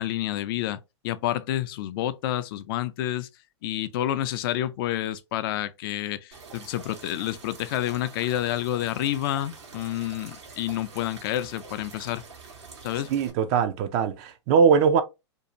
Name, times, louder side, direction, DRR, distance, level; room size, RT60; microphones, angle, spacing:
voice 1, 0.0-3.3 3.6-12.2 12.8-13.1, left 13 dB, 50° left, 0.4 m, -29 dB
sound 1, 6.3-13.3, right 4 dB, 70° right, 1.1 m, -46 dB
voice 2, 13.1-15.0, right 6 dB, 40° right, 0.5 m, -21 dB
2.6 x 2.3 x 2.9 m
hypercardioid pair, 105°, 15 cm